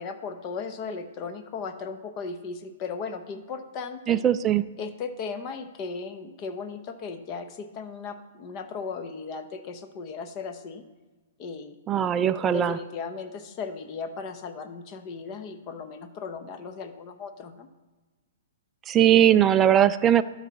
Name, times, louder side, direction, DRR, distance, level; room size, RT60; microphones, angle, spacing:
voice 1, 0.0-4.2 4.8-10.8 11.4-17.7, left 5 dB, 30° left, 8 dB, 0.8 m, -37 dB
voice 2, 4.1-4.6 11.9-12.8 18.9-20.2, right 10 dB, 15° right, 11 dB, 0.3 m, -20 dB
12.0 x 4.1 x 6.0 m, 1.2 s
hypercardioid pair, 155°, 0 cm